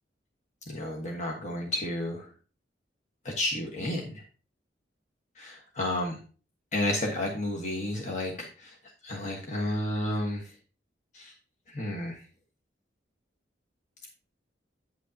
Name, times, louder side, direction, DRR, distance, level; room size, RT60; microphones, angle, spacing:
voice 1, 0.7-2.2 3.2-4.0 5.4-6.2 6.7-8.7 9.0-10.4 11.1-11.3 11.7-12.2, left 1 dB, 40° left, -1 dB, 1.4 m, -31 dB
9.2 x 8.2 x 2.8 m, 0.36 s
head